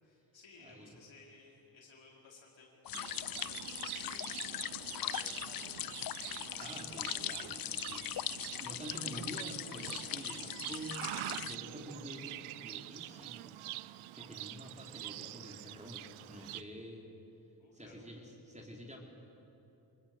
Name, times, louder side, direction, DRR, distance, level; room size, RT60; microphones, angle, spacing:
voice 1, 0.0-2.8 3.0-5.7 6.2-6.5 17.6-18.0, left 3 dB, 65° left, -2 dB, 4.7 m, -59 dB
voice 2, 0.6-0.9 6.6-8.1 8.6-13.6 14.1-17.1 17.7-19.0, equal, 15° right, 0 dB, 4.9 m, -48 dB
sound 1, 2.8-11.5, left 12 dB, 45° left, 0.5 m, -40 dB
Livestock farm animals working animals, 2.9-16.6, right 17 dB, 80° right, 0.6 m, -45 dB
26.0 x 20.0 x 7.0 m, 2.9 s
supercardioid pair, 40°, 49 cm